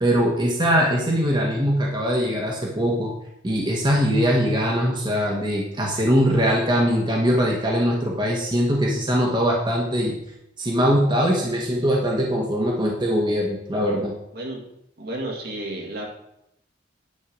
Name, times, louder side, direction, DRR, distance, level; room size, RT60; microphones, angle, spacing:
voice 1, 0.0-3.1 3.4-10.2 10.6-14.1, equal, 25° right, -1 dB, 1.4 m, -21 dB
voice 2, 15.0-16.1, right 1 dB, 55° right, 0 dB, 2.0 m, -31 dB
10.0 x 4.7 x 6.0 m, 0.79 s
head